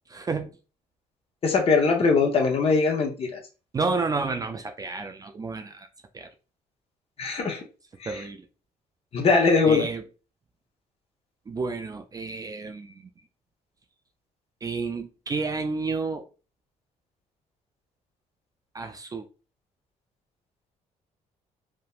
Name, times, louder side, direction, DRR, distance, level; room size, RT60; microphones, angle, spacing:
voice 1, 0.1-0.6 3.7-5.9 6.1-6.3 8.1-8.4 9.6-10.0 11.5-13.1 14.6-16.3 18.7-19.3, right 4 dB, 25° right, 0.3 m, -30 dB
voice 2, 1.4-3.4 7.2-7.6 8.0-8.2 9.1-9.9, left 4 dB, 45° left, 0.8 m, -21 dB
3.3 x 2.1 x 2.4 m
cardioid pair, 90°, 14 cm